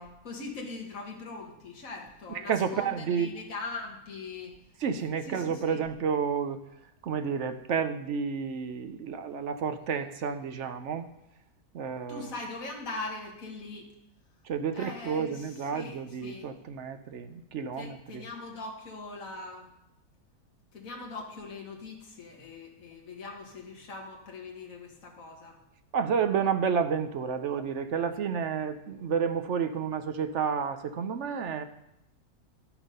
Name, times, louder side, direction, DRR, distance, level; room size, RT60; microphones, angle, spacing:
voice 1, 0.0-4.5 5.2-5.8 12.1-13.9 14.7-16.5 17.7-19.7 20.7-25.6, left 3 dB, 65° left, 0 dB, 2.1 m, -41 dB
voice 2, 2.4-3.3 4.8-6.6 7.0-11.1 11.7-12.3 14.5-18.2 25.9-31.6, right 6 dB, 60° right, 9 dB, 0.9 m, -30 dB
11.5 x 7.2 x 5.4 m, 0.84 s
omnidirectional pair, 1.6 m